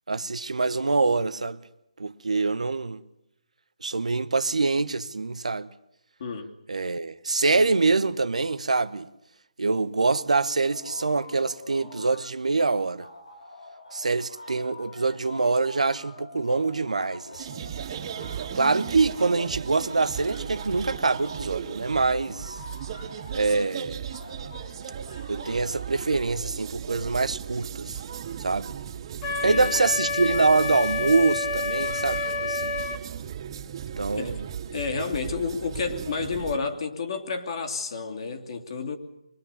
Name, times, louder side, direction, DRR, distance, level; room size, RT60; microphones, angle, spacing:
voice 1, 0.1-1.6 2.0-3.0 3.8-5.7 6.7-9.1 9.6-13.1 13.9-17.5 18.5-22.6 23.3-24.1 25.3-28.0 28.4-28.7 29.4-32.7 34.0-34.4 35.2-35.3, right 3 dB, 75° right, 1.2 m, -25 dB
voice 2, 6.2-6.5 29.4-29.7 34.2-34.4 34.7-39.0, left 5 dB, 50° left, 2.9 m, -30 dB
sound 1, 10.6-12.3 12.6-21.5 21.9-23.7 24.1-26.4, left 2 dB, 75° left, 4.5 m, -46 dB
sound 2, 17.3-36.6, right 8 dB, 40° right, 2.9 m, -36 dB
Wind instrument woodwind instrument, 29.2-33.0, left 4 dB, 25° left, 1.5 m, -29 dB
24.5 x 21.0 x 6.9 m
figure-of-eight pair, 145°, 4 cm